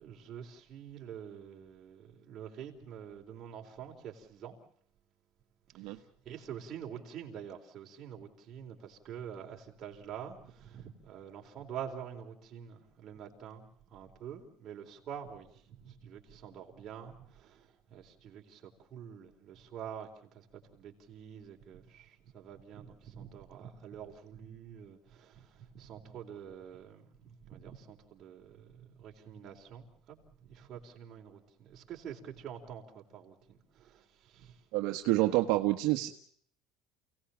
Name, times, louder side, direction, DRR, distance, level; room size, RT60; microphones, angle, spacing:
voice 1, 0.0-4.6 5.7-34.6, right 8 dB, 35° right, 1 dB, 4.1 m, -47 dB
voice 2, 34.7-36.1, right 17 dB, 65° right, 4 dB, 1.3 m, -28 dB
29.0 x 18.0 x 7.2 m, 0.62 s
cardioid pair, 160°, 0 cm